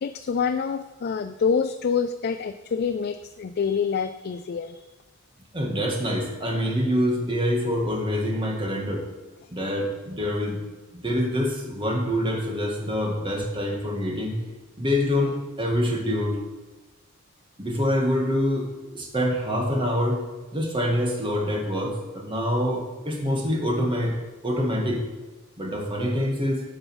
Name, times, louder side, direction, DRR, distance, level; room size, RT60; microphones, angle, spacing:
voice 1, 0.0-4.8, left 6 dB, 50° left, 10 dB, 0.4 m, -26 dB
voice 2, 5.5-9.0 9.5-10.6 10.9-14.3 14.8-16.4 17.6-18.7 18.9-20.2 20.5-24.1 24.4-25.0 25.6-26.6, equal, 25° right, 0 dB, 1.9 m, -25 dB
9.3 x 5.3 x 7.1 m, 1.2 s
head